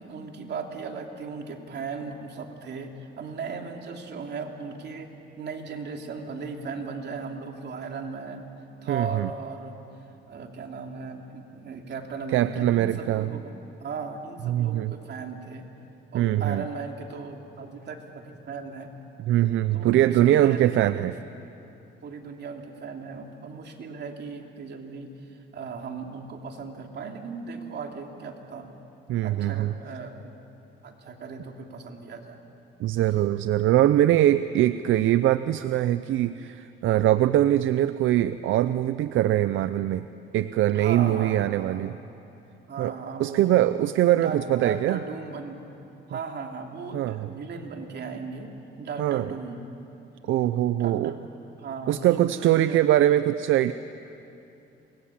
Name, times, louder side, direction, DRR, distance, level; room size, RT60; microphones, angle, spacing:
voice 1, 0.0-8.5 8.8-9.8 10.3-15.7 16.1-18.9 19.7-21.0 22.0-28.7 29.2-30.3 30.8-32.4 40.7-41.9 42.7-43.7 44.1-45.6 46.1-49.6 50.8-51.2 51.6-52.8, right 4 dB, 60° right, 3 dB, 3.0 m, -37 dB
voice 2, 8.9-9.3 12.3-13.4 14.5-14.9 16.1-16.6 19.2-21.2 29.1-29.7 32.8-40.1 40.3-42.0 42.8-42.9 43.2-45.0 46.9-47.3 49.0-49.3 50.2-51.1 51.9-53.7, right 13 dB, 80° right, 13 dB, 0.6 m, -22 dB
27.5 x 22.5 x 8.7 m, 2.8 s
cardioid pair, 90°, 20 cm